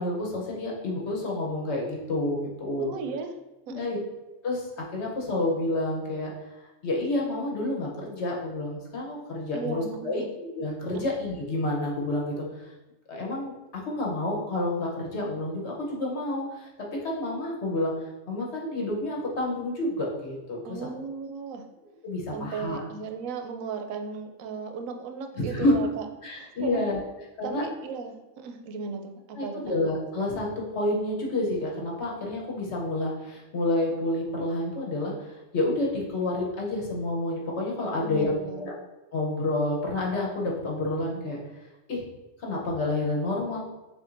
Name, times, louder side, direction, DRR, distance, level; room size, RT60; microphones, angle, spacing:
voice 1, 0.0-2.9 3.7-4.0 4.4-6.3 6.8-12.4 13.1-17.9 18.3-20.8 22.0-22.8 25.4-25.7 26.2-27.0 27.4-27.6 29.3-38.7 39.1-41.4 41.9-42.0 42.4-43.7, left 2 dB, 60° left, -2 dB, 1.1 m, -29 dB
voice 2, 2.8-3.3 3.7-3.9 9.5-10.3 10.9-11.0 20.6-21.6 22.3-26.9 27.4-29.6 37.9-38.7, right 5 dB, 85° right, 5 dB, 1.0 m, -36 dB
7.0 x 2.6 x 2.5 m, 1.0 s
omnidirectional pair, 1.4 m